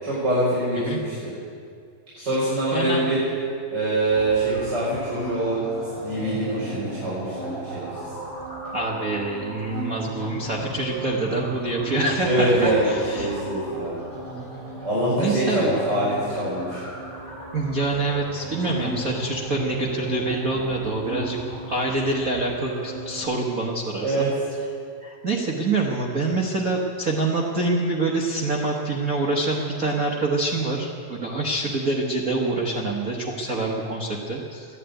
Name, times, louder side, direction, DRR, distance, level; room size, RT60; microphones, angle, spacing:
voice 1, 0.0-1.3 2.2-3.2 3.7-5.6 6.0-7.9 12.2-14.0 14.8-16.8 24.0-24.3, right 1 dB, 30° right, -10 dB, 5.0 m, -24 dB
voice 2, 2.7-3.1 8.7-13.4 15.2-15.7 17.5-21.4 21.7-24.3 25.0-34.7, right 2 dB, 75° right, -1 dB, 0.7 m, -26 dB
sound 1, 4.1-23.2, right 2 dB, 15° right, 5.8 m, -35 dB
14.5 x 11.0 x 9.0 m, 2.3 s
omnidirectional pair, 3.8 m